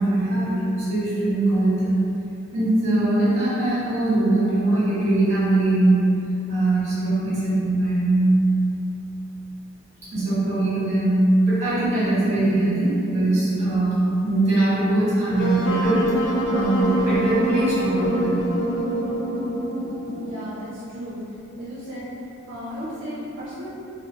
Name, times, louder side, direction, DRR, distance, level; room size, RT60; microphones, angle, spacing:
voice 1, 0.0-2.0 2.5-6.2 6.5-8.3 10.1-18.4, right 2 dB, 35° right, -10 dB, 1.1 m, -21 dB
Wind instrument woodwind instrument, 15.4-20.5, right 1 dB, 65° left, 0.3 m, -25 dB
voice 2, 20.2-21.2 21.6-22.1 22.5-23.7, equal, 70° right, -9 dB, 0.5 m, -34 dB
3.1 x 2.1 x 2.8 m, 2.8 s
head